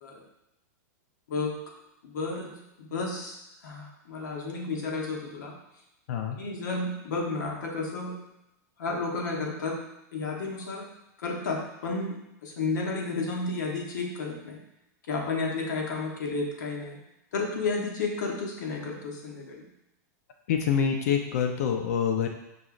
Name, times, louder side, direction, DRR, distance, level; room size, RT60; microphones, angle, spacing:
voice 1, 1.3-1.6 2.0-3.3 3.6-5.6 6.4-8.2 8.8-9.8 10.1-10.9 11.2-14.6 15.1-17.0 17.3-19.7, left 3 dB, 85° left, -1 dB, 1.0 m, -32 dB
voice 2, 20.5-22.3, left 7 dB, 60° left, 4 dB, 0.5 m, -26 dB
5.3 x 2.9 x 2.5 m, 0.88 s
supercardioid pair, 165°, 10 cm